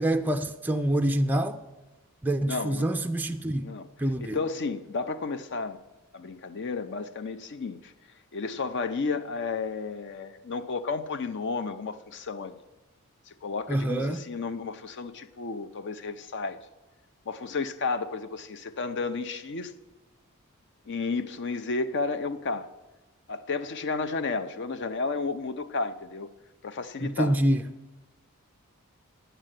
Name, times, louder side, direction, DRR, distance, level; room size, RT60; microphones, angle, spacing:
voice 1, 0.0-1.6 2.2-3.7 4.0-4.4 13.7-14.2 27.0-27.6, right 1 dB, 10° right, 0.3 m, -26 dB
voice 2, 2.4-2.8 3.6-3.9 4.2-5.8 6.1-7.9 8.3-12.6 13.3-16.6 17.3-19.7 20.9-22.7 23.3-26.3 26.6-27.4, left 4 dB, 55° left, 0.6 m, -32 dB
9.1 x 9.0 x 7.7 m
head